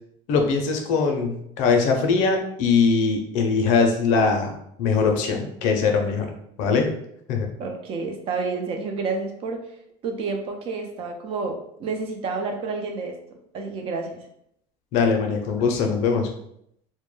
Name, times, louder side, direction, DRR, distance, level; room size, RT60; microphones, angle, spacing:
voice 1, 0.3-4.5 4.8-6.3 6.6-6.9 7.3-7.5 14.9-16.3, left 5 dB, 55° left, 3 dB, 0.5 m, -21 dB
voice 2, 7.6-9.6 10.0-13.2 13.5-14.2, right 4 dB, 40° right, 3 dB, 0.4 m, -29 dB
2.1 x 2.1 x 3.1 m, 0.73 s
cardioid pair, 155°, 15 cm